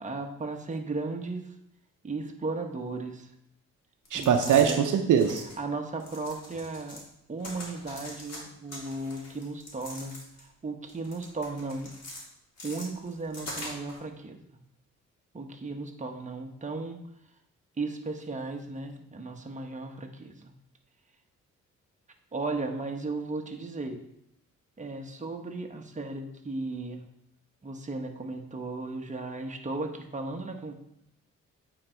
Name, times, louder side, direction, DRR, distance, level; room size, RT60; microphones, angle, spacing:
voice 1, 0.0-1.5 2.0-3.3 4.1-4.9 5.6-7.0 7.3-11.9 12.6-14.6 15.3-17.0 17.8-20.5 22.3-24.0 24.8-27.0 27.6-30.7, right 3 dB, 25° right, 3 dB, 1.1 m, -35 dB
sound 1, 4.1-4.8 5.1-5.6 6.0-7.1 7.4-8.4 8.7-10.5 10.9-12.2 12.6-14.0, left 1 dB, 55° left, 2.6 m, -42 dB
voice 2, 4.1-5.4, right 8 dB, 75° right, 6 dB, 0.8 m, -22 dB
8.6 x 4.0 x 4.5 m, 0.79 s
cardioid pair, 75°, 31 cm